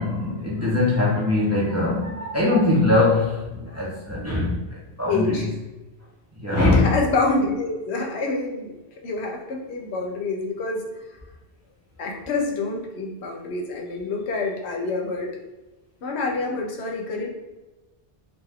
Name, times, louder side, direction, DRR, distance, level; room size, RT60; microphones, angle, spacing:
voice 1, 0.0-4.5 5.0-5.5 6.4-6.8, left 2 dB, 20° right, -6 dB, 0.5 m, -21 dB
voice 2, 5.1-5.5 6.6-8.7 9.0-10.9 12.0-15.3 16.0-17.3, left 3 dB, 85° left, 1 dB, 0.9 m, -26 dB
2.7 x 2.3 x 3.3 m, 1.1 s
omnidirectional pair, 1.1 m